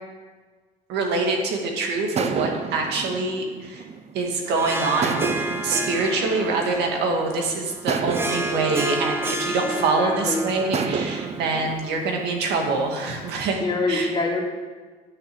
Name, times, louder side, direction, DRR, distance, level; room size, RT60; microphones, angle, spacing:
voice 1, 0.9-3.8 4.1-5.3 5.6-13.6 13.9-14.1, right 3 dB, 80° right, 2 dB, 2.3 m, -25 dB
sound 1, 2.2-4.4 5.0-7.2 7.9-10.1 10.7-11.8, right 5 dB, 40° right, 0.8 m, -30 dB
Harp, 4.5-13.1, right 1 dB, 15° right, 1.0 m, -31 dB
voice 2, 9.7-10.4 13.6-14.4, left 3 dB, 25° left, -2 dB, 2.6 m, -25 dB
10.0 x 6.6 x 8.0 m, 1.4 s
cardioid pair, 110°, 17 cm